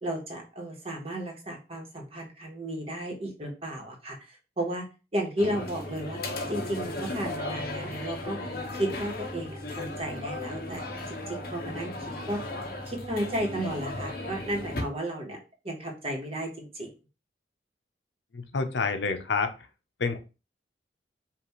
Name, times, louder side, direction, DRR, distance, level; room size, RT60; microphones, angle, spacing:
voice 1, 0.0-4.9 5.1-6.2 6.5-8.4 8.7-11.9 12.3-12.4 12.9-15.4 15.6-16.9, right 1 dB, 35° right, 1 dB, 1.1 m, -33 dB
sound 1, 5.4-14.8, left 2 dB, 55° left, 1.0 m, -36 dB
voice 2, 18.3-19.5 20.0-20.2, left 4 dB, 85° left, 7 dB, 0.7 m, -28 dB
5.6 x 2.5 x 3.0 m, 0.31 s
head